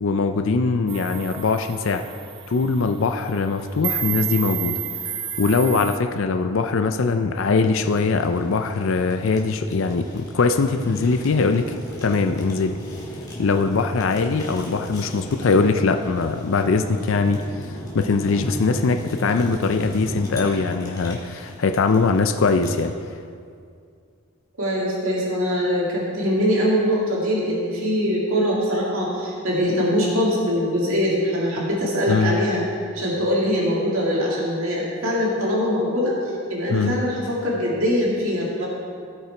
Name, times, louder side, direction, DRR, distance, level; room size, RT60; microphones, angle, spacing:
voice 1, 0.0-2.0 2.5-4.8 5.4-12.8 13.4-22.9 32.1-32.4 36.7-37.0, left 4 dB, 65° left, 7 dB, 0.4 m, -21 dB
sound 1, 0.9-6.0, right 9 dB, 25° right, 0.3 m, -31 dB
Fire, 7.8-22.9, equal, 15° left, 1.8 m, -37 dB
voice 2, 24.6-32.6 32.9-36.1 36.5-38.7, equal, 75° right, -4 dB, 2.1 m, -22 dB
17.0 x 5.8 x 4.4 m, 2.3 s
head